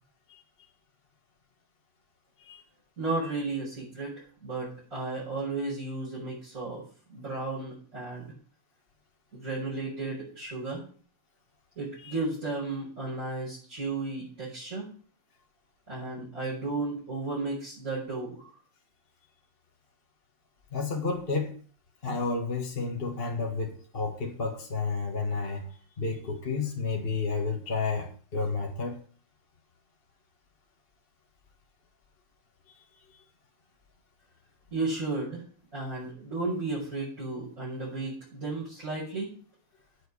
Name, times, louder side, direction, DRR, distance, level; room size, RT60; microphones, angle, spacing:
voice 1, 3.0-4.1 4.4-6.8 7.1-8.3 9.3-10.8 11.8-14.9 15.9-18.5 34.7-35.4 35.7-39.3, right 3 dB, 35° right, -9 dB, 6.1 m, -34 dB
voice 2, 20.7-21.6 22.0-25.7 26.0-29.0, left 4 dB, 30° left, 1 dB, 1.8 m, -31 dB
9.2 x 7.0 x 8.4 m, 0.43 s
omnidirectional pair, 2.3 m